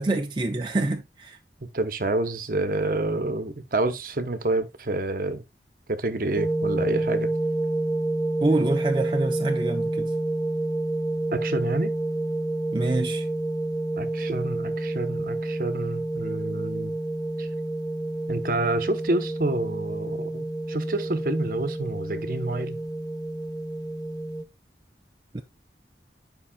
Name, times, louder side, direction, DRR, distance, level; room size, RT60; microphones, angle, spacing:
voice 1, 0.0-1.4 8.4-10.1 12.7-13.3 25.3-25.4, right 2 dB, 25° right, 0.5 m, -26 dB
voice 2, 1.6-5.4 5.9-7.3 11.3-11.9 14.0-16.9 17.4-17.5 18.3-22.8, right 2 dB, 50° right, 0.8 m, -28 dB
sound 1, 6.4-24.4, right 2 dB, 25° left, 0.9 m, -29 dB
10.0 x 5.3 x 2.3 m
head